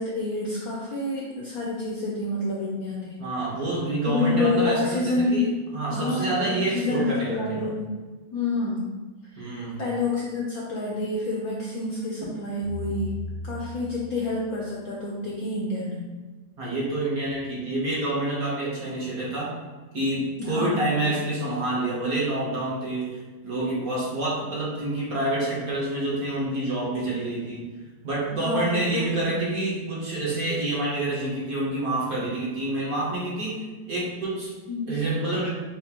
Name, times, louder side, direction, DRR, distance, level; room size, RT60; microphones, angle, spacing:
voice 1, 0.0-3.2 4.0-5.5 5.9-7.9 8.3-8.9 9.3-9.5 9.8-13.1 13.4-16.1 20.4-21.0 28.4-29.4 34.7-35.0, left 3 dB, 70° left, -4 dB, 0.9 m, -28 dB
voice 2, 3.2-7.7 9.4-9.8 16.6-19.5 19.9-27.7 28.0-34.5 34.9-35.5, right 2 dB, 50° right, -6 dB, 1.3 m, -28 dB
sound 1, 12.6-14.8, left 1 dB, 70° right, 1.2 m, -36 dB
5.8 x 2.6 x 2.9 m, 1.3 s
omnidirectional pair, 2.2 m